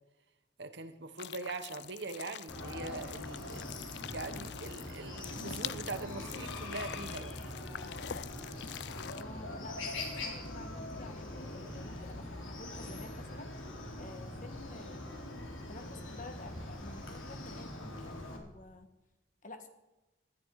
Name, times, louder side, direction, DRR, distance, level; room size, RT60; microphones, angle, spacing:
voice 1, 0.6-7.4, right 3 dB, 60° right, 10 dB, 1.1 m, -42 dB
sound 1, 1.2-9.2, left 10 dB, 55° left, 0.4 m, -45 dB
Chicken rooster, 2.5-18.4, left 1 dB, 80° left, 3.4 m, -43 dB
voice 2, 9.1-13.5 14.0-15.2 15.7-18.9 19.4-19.7, left 2 dB, 40° left, 7 dB, 1.6 m, -50 dB
19.0 x 11.5 x 4.8 m, 1.0 s
head